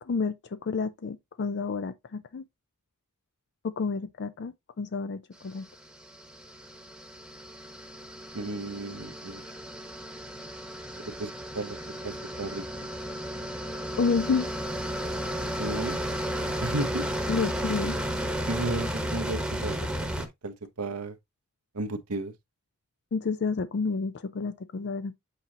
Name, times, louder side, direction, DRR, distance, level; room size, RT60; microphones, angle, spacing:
voice 1, 0.0-2.4 3.6-5.7 14.0-14.5 17.3-18.0 23.1-25.2, left 4 dB, 50° left, 0.4 m, -30 dB
sound 1, 5.6-20.3, equal, 5° right, 1.1 m, -33 dB
voice 2, 8.3-9.4 11.0-11.8 12.0-12.6 15.6-16.0 16.6-17.0 18.5-19.9 20.4-21.2 21.7-22.3, right 2 dB, 90° right, 1.0 m, -33 dB
8.3 x 4.2 x 2.8 m
head